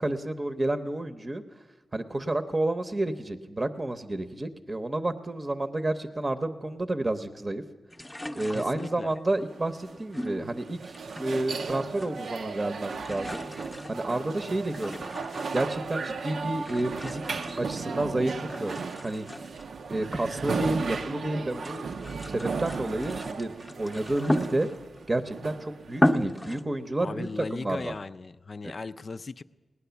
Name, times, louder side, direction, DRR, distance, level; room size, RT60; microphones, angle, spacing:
voice 1, 0.0-1.4 1.9-7.6 8.4-13.4 13.9-15.0 15.5-18.8 19.0-19.3 19.9-21.9 22.3-23.5 23.8-24.7 25.1-27.9, right 2 dB, 30° right, 9 dB, 0.8 m, -30 dB
sound 1, 7.9-9.2 10.1-11.6 11.9-12.5 12.8-15.9 16.5-18.1 18.5-21.1 21.5-25.0 25.5-25.6 25.9-26.6, left 1 dB, 15° left, 0.7 m, -34 dB
voice 2, 8.5-9.2 27.0-29.4, left 3 dB, 50° left, 13 dB, 0.4 m, -37 dB
sound 2, 9.5-26.5, right 4 dB, 80° right, 0.6 m, -36 dB
18.5 x 9.8 x 6.9 m, 1.3 s
cardioid pair, 65°, 0 cm